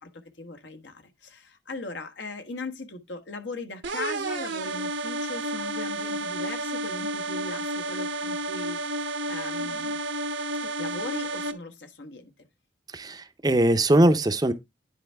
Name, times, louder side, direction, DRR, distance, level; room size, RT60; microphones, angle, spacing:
voice 1, 0.0-10.0 10.6-12.3, left 2 dB, 75° left, 1.2 m, -39 dB
sound 1, 3.8-11.5, right 2 dB, 80° right, 1.1 m, -31 dB
voice 2, 12.9-14.5, right 1 dB, 20° right, 0.6 m, -21 dB
9.9 x 4.4 x 3.4 m
head